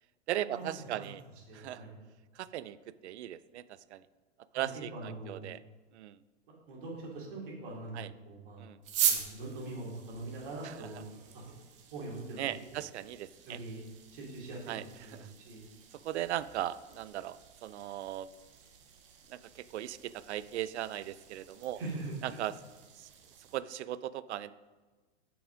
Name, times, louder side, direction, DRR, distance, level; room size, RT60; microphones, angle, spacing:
voice 1, 0.3-1.2 1.5-1.8 2.4-2.8 3.0-3.6 3.9-4.0 4.5-5.6 5.9-6.2 7.9-8.1 8.6-8.8 10.6-10.7 12.4-13.6 14.7-14.8 15.1-15.3 16.0-18.3 19.3-21.8 22.2-22.5 23.0-23.1 23.5-24.5, right 12 dB, 65° right, 16 dB, 0.5 m, -38 dB
voice 2, 1.5-1.9 4.5-5.5 6.7-8.7 9.1-11.5 11.9-12.4 12.7-12.8 13.5-13.8 14.1-15.6 21.7-22.4, right 2 dB, 45° right, -3 dB, 2.6 m, -43 dB
sound 1, 8.8-23.6, right 9 dB, 25° right, 0.7 m, -41 dB
7.3 x 5.9 x 5.0 m, 1.3 s
supercardioid pair, 170°, 36 cm